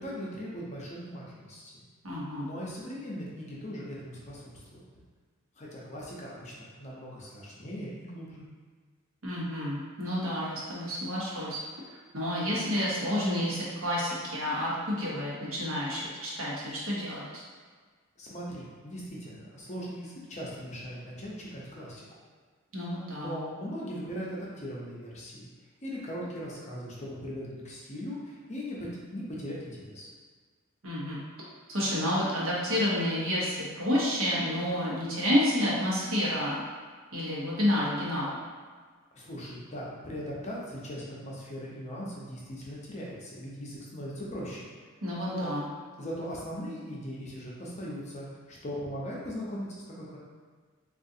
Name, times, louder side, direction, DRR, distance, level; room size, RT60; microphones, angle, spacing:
voice 1, 0.0-1.8 2.4-4.9 5.6-8.5 18.2-22.1 23.1-25.5 25.8-30.1 39.1-44.7 45.3-45.5 46.0-49.7 49.9-50.2, equal, 35° left, -5 dB, 0.6 m, -39 dB
voice 2, 2.0-2.5 9.2-11.6 12.1-17.2 22.7-23.3 30.8-31.2 31.7-36.6 37.1-38.4 45.0-45.6, left 1 dB, 70° right, -6 dB, 0.9 m, -29 dB
3.7 x 2.4 x 2.6 m, 1.6 s
head